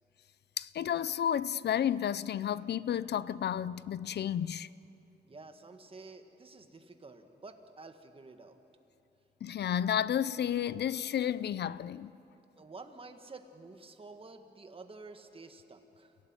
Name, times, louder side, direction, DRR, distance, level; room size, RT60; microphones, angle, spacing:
voice 1, 0.6-4.7 9.4-12.1, left 9 dB, 70° left, 0.5 m, -32 dB
voice 2, 5.3-8.6 12.6-16.2, right 3 dB, 30° right, 1.7 m, -50 dB
29.0 x 17.0 x 9.7 m
wide cardioid pair, 150°, 18 cm